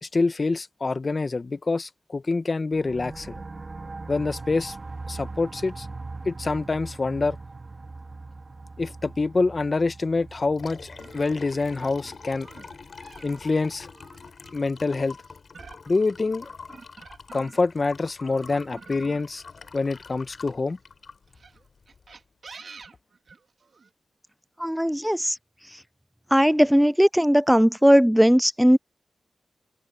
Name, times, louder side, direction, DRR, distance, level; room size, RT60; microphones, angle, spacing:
voice 1, 0.0-3.3 4.1-4.7 5.1-5.9 6.2-7.4 8.8-10.8 11.1-12.5 13.2-13.9 14.5-15.2 15.9-16.5 17.3-19.4 19.7-20.8, left 3 dB, 45° left, 1.2 m, -26 dB
sound 1, 2.7-14.0, right 3 dB, 40° right, 2.3 m, -41 dB
Liquid, 10.2-22.1, left 5 dB, 65° left, 5.6 m, -46 dB
sound 2, 11.0-17.8 18.2-20.6 21.3-23.9, right 4 dB, 60° right, 2.4 m, -49 dB
voice 2, 24.6-25.4 26.3-28.8, equal, ahead, 0.4 m, -18 dB
open air
cardioid pair, 55°, 0 cm